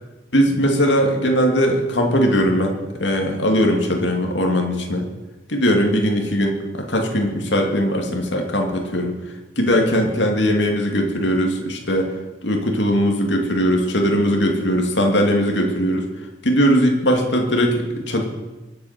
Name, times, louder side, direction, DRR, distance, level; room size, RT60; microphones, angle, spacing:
voice 1, 0.3-2.7 3.0-5.1 5.5-9.1 9.6-12.1 12.4-16.1 16.4-18.2, equal, 70° left, 1 dB, 2.4 m, -19 dB
24.0 x 8.6 x 5.9 m, 1.1 s
head